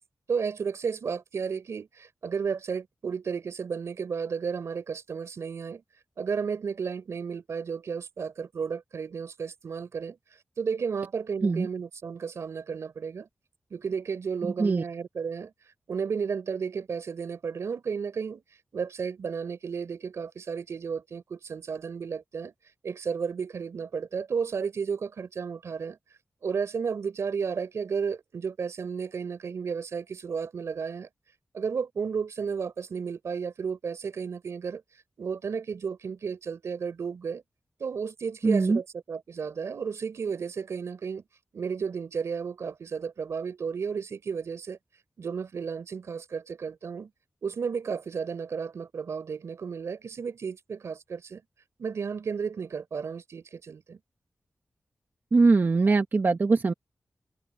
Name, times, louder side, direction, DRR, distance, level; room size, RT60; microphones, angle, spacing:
voice 1, 0.3-5.8 6.2-10.2 10.6-13.3 13.7-15.5 15.9-18.4 18.7-22.5 22.8-26.0 26.4-31.1 31.5-34.8 35.2-37.4 37.8-41.2 41.5-44.8 45.2-47.1 47.4-51.4 51.8-54.0, right 6 dB, 85° right, 4.0 m, -33 dB
voice 2, 38.4-38.8 55.3-56.7, right 3 dB, 45° right, 1.1 m, -22 dB
wide cardioid pair, 105°, 5 cm